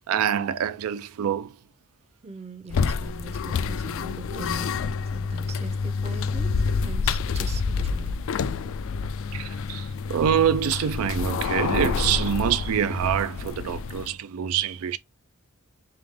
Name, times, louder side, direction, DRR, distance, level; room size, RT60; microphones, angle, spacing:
voice 1, 0.1-1.6 9.3-15.0, right 9 dB, 90° right, 0.4 m, -25 dB
voice 2, 2.2-8.2, right 2 dB, 30° right, 0.6 m, -40 dB
sound 1, 2.7-14.1, left 5 dB, 65° left, 0.3 m, -28 dB
3.4 x 3.4 x 3.5 m
head